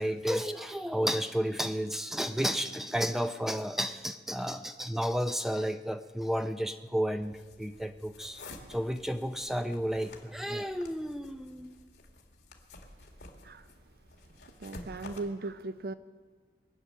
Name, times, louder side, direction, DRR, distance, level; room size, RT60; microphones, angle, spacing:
voice 1, 0.0-8.4 8.7-11.8, equal, ahead, 8 dB, 0.4 m, -32 dB
sound 1, 7.2-15.2, left 2 dB, 70° left, 1.9 m, -51 dB
voice 2, 14.6-15.9, right 3 dB, 55° right, 13 dB, 0.5 m, -38 dB
22.5 x 8.7 x 6.6 m, 1.5 s
head